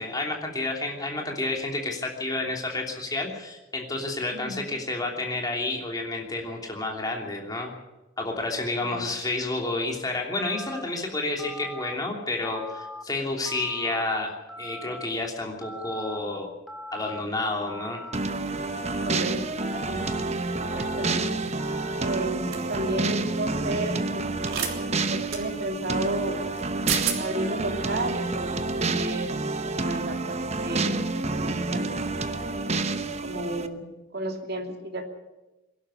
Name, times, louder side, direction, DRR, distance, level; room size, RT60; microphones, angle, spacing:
voice 1, 0.0-7.7 8.2-14.3 14.6-16.5 16.9-18.1, left 2 dB, 20° left, 1 dB, 3.0 m, -30 dB
voice 2, 4.3-4.6 8.8-9.0 19.0-19.4 19.9-20.1 20.6-21.5 22.0-24.2 24.5-26.4 27.2-29.3 29.6-31.0 31.4-31.9 33.2-33.9 34.1-35.0, right 2 dB, 50° right, 4 dB, 2.8 m, -32 dB
Telephone, 10.4-10.8 11.4-11.9 12.4-13.0 13.5-14.0 14.5-15.1 15.6-16.2 16.7-17.2 17.7-18.2 18.7-19.2 19.6-20.2 20.6-21.2 21.6-22.2, equal, ahead, 2.3 m, -40 dB
sound 1, 18.1-33.7, right 3 dB, 30° right, 0.9 m, -29 dB
sound 2, 22.5-22.7 24.4-24.7 25.3-25.4 26.6-26.7 26.9-27.2, right 8 dB, 75° right, 3.3 m, -29 dB
22.0 x 12.0 x 9.9 m, 1.1 s
head